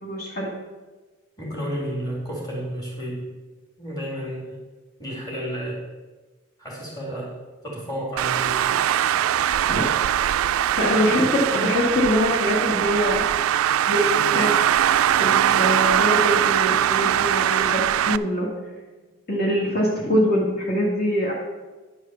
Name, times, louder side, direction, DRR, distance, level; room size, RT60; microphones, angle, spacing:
voice 1, 0.0-0.5 9.7-9.9 10.3-10.4 10.8-13.2 13.9-14.6 15.2-18.5 19.3-21.3, equal, 45° left, -5 dB, 1.8 m, -23 dB
voice 2, 1.4-3.3 3.8-4.6 5.0-5.8 6.6-7.3 7.6-8.8, equal, 20° left, -3 dB, 2.7 m, -31 dB
Traffic noise roadway noise, 8.2-18.2, right 10 dB, 85° right, 0.3 m, -21 dB
10.0 x 4.8 x 6.9 m, 1.3 s
head